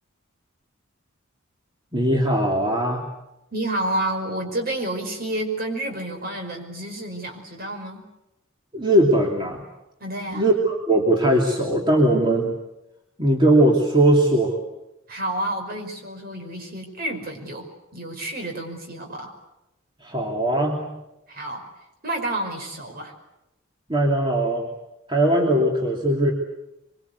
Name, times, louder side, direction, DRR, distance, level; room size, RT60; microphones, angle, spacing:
voice 1, 1.9-3.1 8.7-9.6 10.3-12.5 13.2-14.5 20.0-20.9 23.9-24.7 25.1-26.3, right 1 dB, 25° right, -1 dB, 2.9 m, -20 dB
voice 2, 3.5-8.1 10.0-10.5 15.1-17.7 17.9-19.3 21.3-21.7 22.0-23.1, right 1 dB, 50° right, 3 dB, 5.5 m, -29 dB
24.5 x 24.0 x 8.3 m, 0.91 s
head